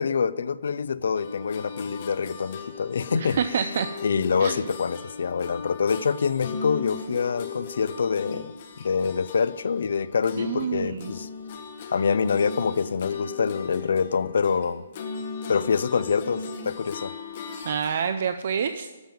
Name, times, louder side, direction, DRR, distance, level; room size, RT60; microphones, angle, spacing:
voice 1, 0.0-3.4 4.0-8.5 8.8-11.3 11.9-14.8 15.5-17.1, left 6 dB, 65° left, 17 dB, 0.5 m, -25 dB
sound 1, 1.1-10.7 11.0-18.1, left 5 dB, 35° left, 1.3 m, -38 dB
voice 2, 3.1-3.9 4.4-4.6 10.4-11.1 17.6-18.9, right 7 dB, 45° right, 10 dB, 0.5 m, -27 dB
13.0 x 5.5 x 9.0 m, 1.2 s
hypercardioid pair, 175°, 0 cm